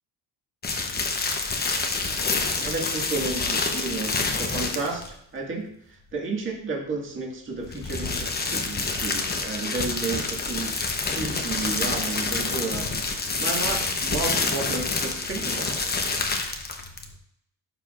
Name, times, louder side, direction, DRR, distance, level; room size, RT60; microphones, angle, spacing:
sound 1, 0.6-5.1 7.6-17.1, left 3 dB, 20° left, 0.9 m, -27 dB
voice 1, 2.6-5.0 5.3-16.1, right 3 dB, 30° right, -2 dB, 1.8 m, -32 dB
12.0 x 4.7 x 2.5 m, 0.73 s
cardioid pair, 130°, 42 cm